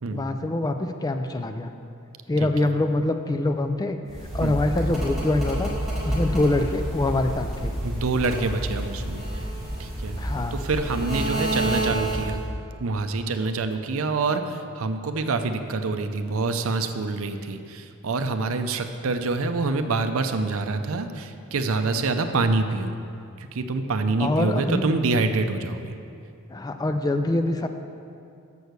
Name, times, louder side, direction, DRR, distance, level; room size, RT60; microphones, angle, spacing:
voice 1, 0.1-1.7 2.3-4.0 4.3-5.7 6.1-7.7 10.2-10.6 24.2-24.9 26.5-27.7, left 2 dB, 15° left, 7 dB, 0.3 m, -24 dB
sound 1, 4.1-12.5, right 1 dB, ahead, 1.9 m, -29 dB
voice 2, 7.8-9.2 9.8-10.1 10.5-12.4 12.8-22.9 23.5-25.9, right 3 dB, 70° right, 8 dB, 0.5 m, -26 dB
7.0 x 6.4 x 6.6 m, 2.5 s
head